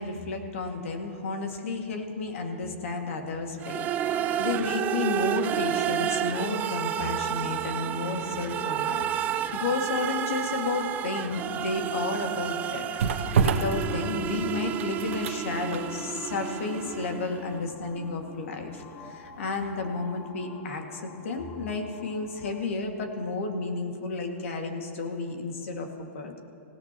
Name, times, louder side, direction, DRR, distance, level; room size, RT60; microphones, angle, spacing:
voice 1, 0.0-12.9 13.4-26.4, left 3 dB, 80° left, 3 dB, 2.1 m, -32 dB
sound 1, 3.6-17.4, right 10 dB, 25° right, 0.4 m, -31 dB
sound 2, 3.9-22.6, left 3 dB, 30° left, 1.6 m, -47 dB
sound 3, 11.7-19.7 20.0-20.2, right 5 dB, 80° right, 1.0 m, -31 dB
27.0 x 17.0 x 3.0 m, 2.5 s
hypercardioid pair, 150°, 7 cm